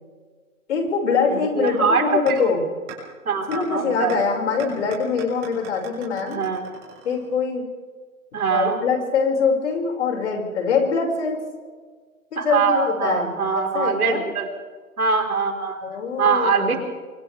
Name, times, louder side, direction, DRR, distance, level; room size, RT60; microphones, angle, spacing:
voice 1, 0.7-2.6 3.5-6.4 7.0-7.6 8.5-11.4 12.3-14.2 15.8-16.8, left 5 dB, 55° left, 2 dB, 5.9 m, -23 dB
voice 2, 1.3-2.0 2.3-2.5 3.2-4.2 6.3-6.7 8.3-8.8 12.4-14.5 15.0-15.8 16.2-16.8, right 5 dB, 90° right, 2 dB, 4.7 m, -22 dB
sound 1, 2.3-2.4 2.9-3.0 3.5-3.6 4.1-4.2 4.6-7.5, right 11 dB, 25° right, 7.2 m, -39 dB
29.0 x 25.5 x 3.5 m, 1.5 s
hypercardioid pair, 150°, 42 cm